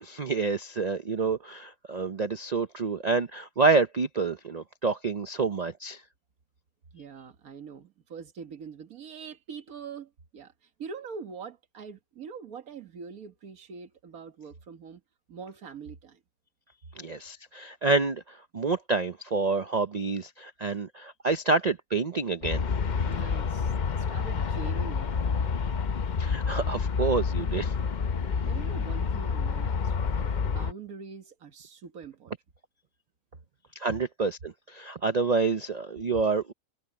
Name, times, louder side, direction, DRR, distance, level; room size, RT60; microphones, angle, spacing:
voice 1, 0.0-6.0 17.0-22.6 26.2-27.7 33.8-36.5, right 4 dB, 45° right, 0.5 m, -28 dB
voice 2, 6.9-10.5 10.8-15.0 15.3-16.2 23.1-25.3 28.4-32.3, right 5 dB, 70° right, 1.9 m, -43 dB
Aircraft, 22.4-30.7, left 5 dB, 45° left, 0.6 m, -28 dB
omnidirectional pair, 1.6 m